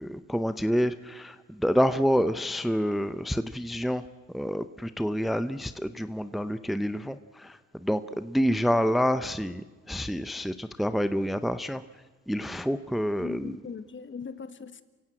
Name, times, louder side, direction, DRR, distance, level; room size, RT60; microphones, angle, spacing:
voice 1, 0.0-11.8 12.3-13.6, equal, ahead, 12 dB, 0.7 m, -28 dB
voice 2, 13.2-14.8, left 6 dB, 40° left, 12 dB, 1.5 m, -40 dB
28.5 x 16.0 x 7.7 m, 1.3 s
cardioid pair, 90°, 30 cm